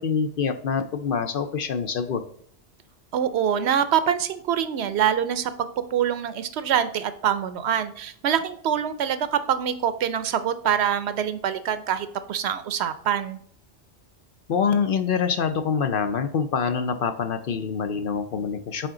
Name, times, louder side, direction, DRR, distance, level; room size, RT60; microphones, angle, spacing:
voice 1, 0.0-2.2 14.5-18.9, left 6 dB, 60° left, 8 dB, 0.7 m, -25 dB
voice 2, 3.1-5.5 5.9-13.4, right 9 dB, 70° right, 12 dB, 0.8 m, -25 dB
8.7 x 3.8 x 3.7 m, 0.63 s
omnidirectional pair, 1.2 m